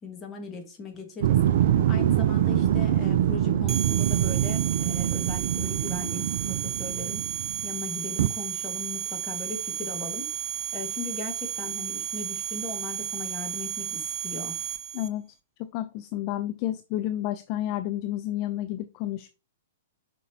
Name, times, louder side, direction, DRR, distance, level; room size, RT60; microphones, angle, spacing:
voice 1, 0.0-7.2 7.6-10.3 10.7-14.5, left 3 dB, 20° left, 2 dB, 1.7 m, -38 dB
sound 1, 1.2-7.7 8.2-8.3, right 11 dB, 50° right, 0.4 m, -24 dB
sound 2, 3.7-15.1, right 10 dB, 25° right, 0.8 m, -33 dB
voice 2, 15.6-19.3, left 13 dB, 35° left, 11 dB, 0.4 m, -30 dB
6.4 x 5.2 x 2.9 m, 0.32 s
figure-of-eight pair, 105°, 0 cm